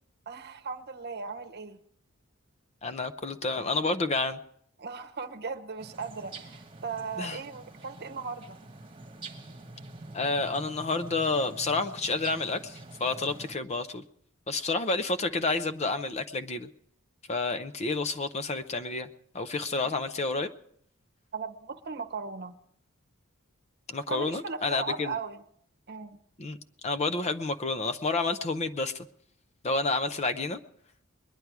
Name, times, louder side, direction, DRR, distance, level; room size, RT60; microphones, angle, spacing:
voice 1, 0.3-1.8 4.8-8.6 19.8-20.0 21.3-22.5 24.1-25.4 25.9-26.2, right 5 dB, 50° right, 7 dB, 0.9 m, -37 dB
voice 2, 2.8-4.4 7.2-7.4 10.1-14.0 14.5-16.7 17.3-19.1 19.3-20.5 23.9-25.1 26.4-26.6 26.8-29.1 29.6-30.6, left 3 dB, 30° left, 11 dB, 0.6 m, -29 dB
sound 1, 5.8-13.5, right 2 dB, 25° right, 1.4 m, -46 dB
22.0 x 10.5 x 4.7 m, 0.68 s
head